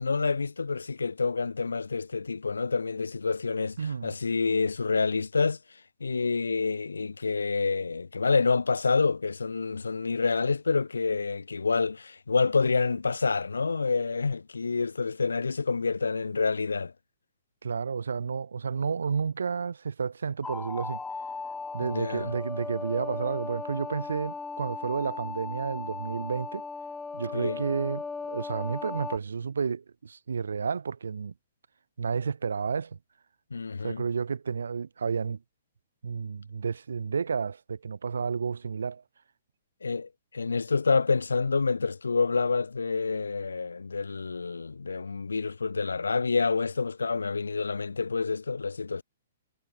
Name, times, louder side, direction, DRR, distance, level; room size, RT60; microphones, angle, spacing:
voice 1, 0.0-3.8 4.0-5.6 6.0-16.9 21.8-22.3 27.3-27.6 33.5-34.0 39.8-49.0, left 4 dB, 85° left, 2.6 m, -28 dB
voice 2, 3.8-4.1 17.6-21.0 21.7-26.7 27.1-31.3 32.0-33.0 33.8-35.4 36.0-39.0, right 5 dB, 80° right, 2.2 m, -31 dB
sound 1, 20.4-29.2, left 4 dB, 10° left, 2.1 m, -37 dB
hypercardioid pair, 125°, 0 cm